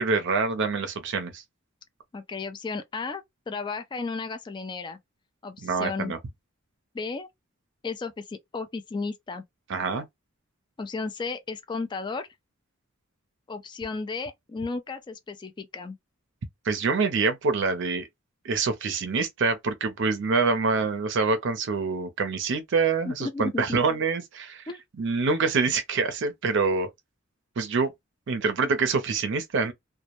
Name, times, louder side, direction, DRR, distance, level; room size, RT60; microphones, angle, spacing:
voice 1, 0.0-1.4 5.6-6.2 9.7-10.1 16.6-18.1 18.4-24.6 25.0-26.9 27.6-27.9 28.3-29.7, right 4 dB, 60° right, 0.5 m, -26 dB
voice 2, 2.1-5.0 5.4-6.1 6.9-7.3 7.8-9.4 10.8-12.3 13.5-16.0 23.1-23.8 24.7-24.8, left 4 dB, 20° left, 0.3 m, -34 dB
2.1 x 2.0 x 2.8 m
head